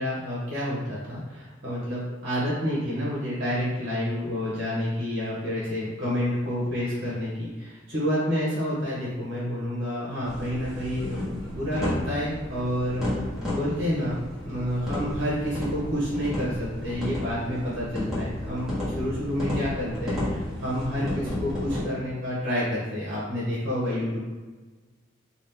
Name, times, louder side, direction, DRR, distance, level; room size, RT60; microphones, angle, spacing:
voice 1, 0.0-14.2 14.4-24.2, equal, 55° right, -8 dB, 1.0 m, -29 dB
sound 1, 10.2-21.8, left 1 dB, 5° right, 1.1 m, -32 dB
2.9 x 2.4 x 3.4 m, 1.3 s
head